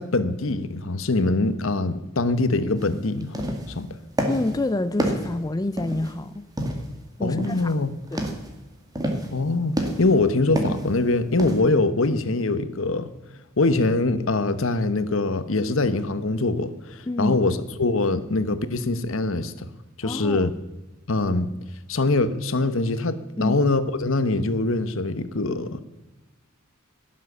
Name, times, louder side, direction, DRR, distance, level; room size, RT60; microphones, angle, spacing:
voice 1, 0.0-3.9 7.2-7.9 9.3-13.1 13.6-19.7 20.0-20.5 21.1-21.5 21.9-25.8, left 2 dB, 65° left, 1.0 m, -23 dB
sound 1, 2.8-2.9 3.2-3.8 4.2-4.6 5.0-6.2 6.6-7.0 7.4-7.7 8.0-8.5 9.0-9.3 9.8-10.2 10.6-10.9 11.4-11.6, right 1 dB, 15° right, 2.0 m, -28 dB
voice 2, 4.3-6.5 7.2-7.8 8.1-8.2 17.1-17.4 20.0-20.5 23.4-23.6, left 2 dB, 15° left, 0.4 m, -27 dB
17.0 x 7.5 x 6.8 m
head